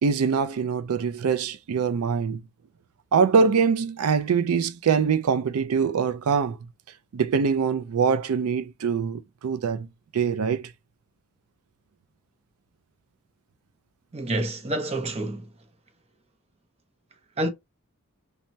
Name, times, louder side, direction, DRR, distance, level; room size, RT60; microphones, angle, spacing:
voice 1, 0.0-2.4 3.1-6.6 7.1-9.9 10.1-10.7, right 6 dB, 80° right, 0.4 m, -23 dB
voice 2, 14.1-15.5 17.4-17.5, right 1 dB, 30° right, 0.5 m, -28 dB
3.2 x 2.1 x 2.6 m
head